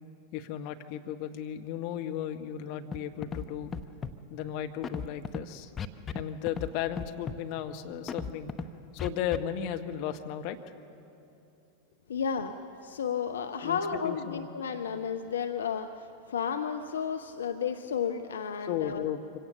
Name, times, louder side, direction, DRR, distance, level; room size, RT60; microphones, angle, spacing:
voice 1, 0.3-3.7 4.3-5.7 6.1-8.5 8.9-10.6 13.6-14.5 18.6-19.4, left 10 dB, 45° left, 6 dB, 1.1 m, -35 dB
Scratching (performance technique), 2.9-3.0 3.2-3.4 3.7-4.1 4.8-5.4 5.8-6.2 6.5-6.7 7.0-7.4 8.1-8.6 9.0-9.4, left 6 dB, 20° left, 0.8 m, -35 dB
voice 2, 12.1-12.5 12.8-19.0, left 7 dB, 65° left, 7 dB, 0.7 m, -32 dB
25.0 x 17.0 x 6.6 m, 2.9 s
figure-of-eight pair, 90°, 0 cm